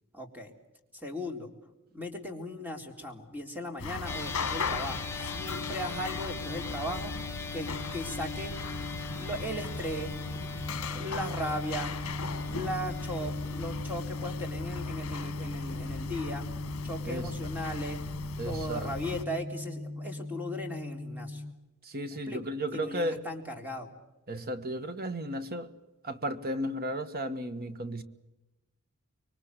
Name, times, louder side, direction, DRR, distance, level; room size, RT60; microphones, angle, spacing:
voice 1, 0.1-0.5 0.9-1.5 1.9-7.1 7.5-8.5 9.1-10.2 10.9-12.0 12.5-16.5 16.8-18.0 18.4-21.4 22.3-22.4 22.7-23.9, equal, 10° right, 4 dB, 3.7 m, -37 dB
sound 1, 3.8-19.2, left 4 dB, 70° left, 1.4 m, -38 dB
sound 2, 4.1-21.5, left 2 dB, 10° left, 1.4 m, -39 dB
voice 2, 18.4-18.9 21.8-23.2 24.3-25.7 26.0-28.0, equal, 45° right, 10 dB, 1.6 m, -34 dB
26.0 x 23.5 x 8.3 m, 1.0 s
head